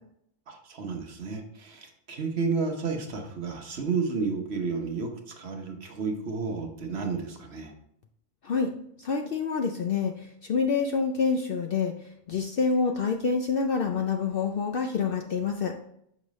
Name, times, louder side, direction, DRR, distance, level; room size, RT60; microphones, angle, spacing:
voice 1, 0.5-7.7, right 4 dB, 55° right, 3 dB, 1.1 m, -31 dB
voice 2, 9.0-11.9 12.3-15.7, left 5 dB, 70° left, 4 dB, 0.5 m, -27 dB
6.4 x 4.9 x 3.1 m, 0.73 s
omnidirectional pair, 1.4 m